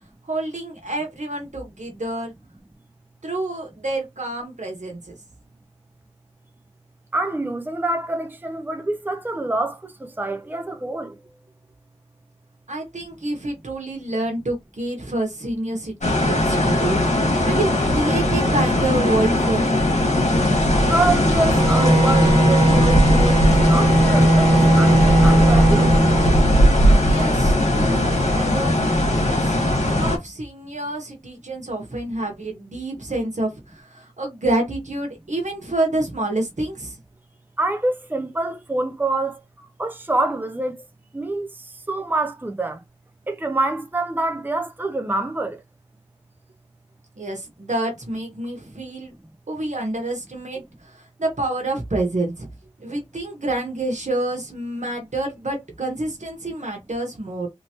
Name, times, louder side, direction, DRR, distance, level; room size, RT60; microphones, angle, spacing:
voice 1, 0.3-2.3 3.2-5.1 12.7-17.0 17.4-20.1 27.0-29.6 29.8-37.0 47.2-49.1 49.5-52.5 52.8-57.5, right 2 dB, 80° right, 1.1 m, -28 dB
voice 2, 7.1-11.1 20.9-25.9 37.6-40.8 41.1-42.8 43.3-45.6, right 2 dB, 15° right, 0.5 m, -26 dB
sound 1, 16.0-30.2, left 1 dB, 70° left, 1.6 m, -19 dB
Bowed string instrument, 21.3-26.7, right 1 dB, 45° right, 1.0 m, -18 dB
3.2 x 2.9 x 2.9 m
wide cardioid pair, 45°, 12 cm